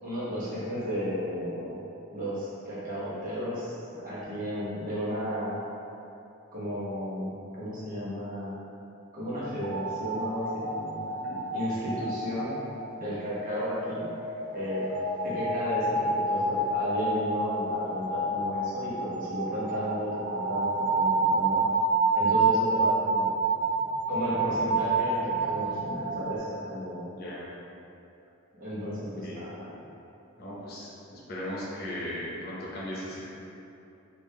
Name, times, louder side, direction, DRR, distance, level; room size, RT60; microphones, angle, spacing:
voice 1, 0.0-1.9 2.1-5.6 6.5-8.6 9.1-11.0 11.5-12.6 13.0-14.1 14.5-14.9 15.2-21.6 22.1-23.3 24.1-27.1 28.6-29.7, equal, 40° right, -9 dB, 1.1 m, -33 dB
sound 1, 9.6-26.4, right 3 dB, 75° right, 0.4 m, -29 dB
voice 2, 11.1-11.4 27.1-27.4 29.0-29.4 30.4-33.3, left 1 dB, 50° left, -6 dB, 0.8 m, -38 dB
3.7 x 2.6 x 3.2 m, 2.7 s
head